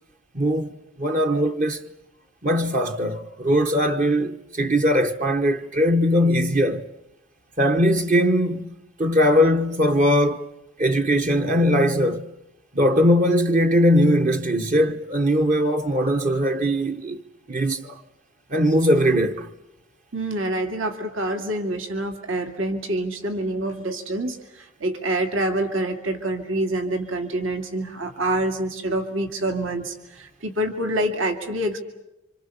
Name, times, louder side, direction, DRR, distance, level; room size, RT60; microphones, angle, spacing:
voice 1, 0.3-0.7 1.0-1.9 2.4-6.8 7.6-8.7 9.0-10.5 10.8-12.3 12.7-17.2 17.5-18.0 18.5-19.5, equal, 35° right, 1.0 m, -20 dB
voice 2, 20.1-31.8, right 1 dB, 70° right, 2.4 m, -26 dB
28.0 x 26.5 x 7.0 m
head